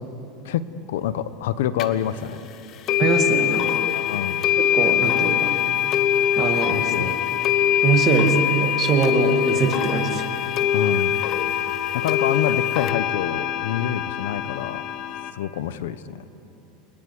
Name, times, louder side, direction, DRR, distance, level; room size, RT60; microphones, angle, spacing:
voice 1, 0.4-2.4 3.9-4.4 6.7-7.1 10.7-11.2 11.9-14.8 15.3-16.2, left 10 dB, 85° left, 13 dB, 1.2 m, -27 dB
sound 1, 1.8-1.9 2.9-15.3, left 10 dB, 30° left, 1.2 m, -23 dB
voice 2, 3.0-3.8 4.6-5.6 6.4-7.2 7.8-10.2, right 5 dB, 25° right, 4 dB, 2.3 m, -23 dB
30.0 x 20.0 x 9.8 m, 2.9 s
supercardioid pair, 170°, 0 cm